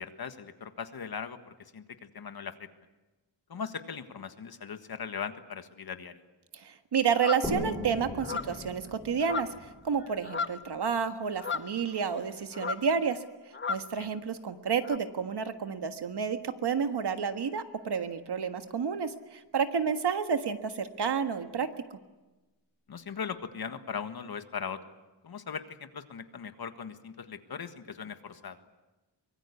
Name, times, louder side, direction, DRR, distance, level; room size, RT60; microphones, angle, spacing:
voice 1, 0.0-2.7 3.5-6.1 14.0-14.1 22.9-24.8 25.2-28.6, left 6 dB, 55° left, 8 dB, 1.7 m, -39 dB
voice 2, 6.5-13.2 13.7-21.7, right 6 dB, 65° right, 8 dB, 1.6 m, -30 dB
sound 1, 7.1-7.5 8.2-8.7 9.2-9.7 10.0-10.7 11.4-12.2 12.5-12.9 13.5-13.9 14.8-15.0, left 5 dB, 25° left, 0.7 m, -35 dB
sound 2, 7.4-10.9, left 1 dB, ahead, 6.6 m, -39 dB
24.0 x 22.5 x 8.3 m, 1.1 s
wide cardioid pair, 165°, 44 cm